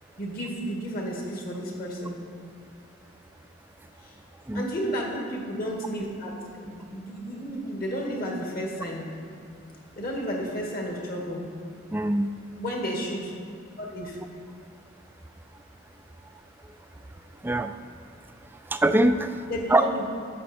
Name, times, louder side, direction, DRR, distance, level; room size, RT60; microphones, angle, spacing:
voice 1, 0.2-2.2 4.0-4.1 4.5-9.2 10.0-11.5 12.6-13.3 13.8-14.2 19.5-20.0, equal, 50° left, -1 dB, 1.9 m, -32 dB
voice 2, 11.9-12.4 17.4-17.7 18.7-19.8, right 1 dB, 10° right, 9 dB, 0.3 m, -23 dB
12.0 x 7.7 x 4.3 m, 2.3 s
head